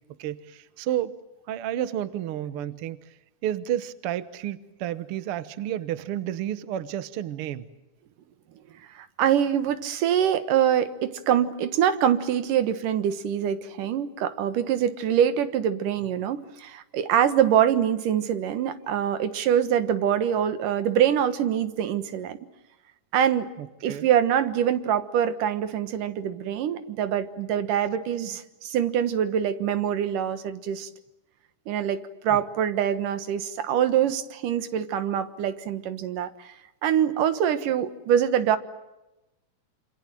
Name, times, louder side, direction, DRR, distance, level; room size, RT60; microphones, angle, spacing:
voice 1, 0.2-1.1 1.5-3.1 3.4-7.7 23.6-24.1 32.3-32.4, right 11 dB, 60° right, 13 dB, 1.7 m, -31 dB
voice 2, 8.9-22.4 23.1-23.5 23.8-30.9 31.7-36.5 36.8-38.6, right 9 dB, 90° right, 11 dB, 3.0 m, -24 dB
27.5 x 26.5 x 7.7 m, 0.99 s
omnidirectional pair, 3.6 m